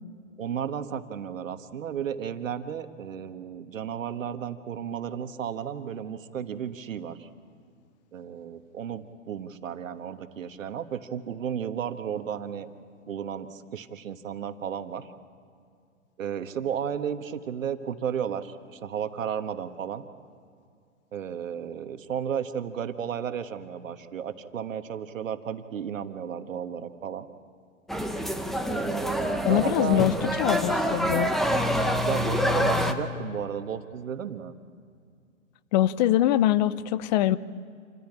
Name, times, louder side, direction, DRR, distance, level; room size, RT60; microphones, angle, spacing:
voice 1, 0.4-7.3 8.1-12.7 13.1-15.1 16.2-20.0 21.1-27.3 28.7-30.0 32.1-34.6, right 8 dB, 75° right, 9 dB, 1.5 m, -33 dB
sound 1, 27.9-32.9, equal, ahead, 0.7 m, -26 dB
voice 2, 29.4-30.1 30.4-31.3 35.7-37.4, left 13 dB, 35° left, 17 dB, 0.7 m, -23 dB
27.5 x 15.0 x 8.7 m, 2.3 s
hypercardioid pair, 130°, 39 cm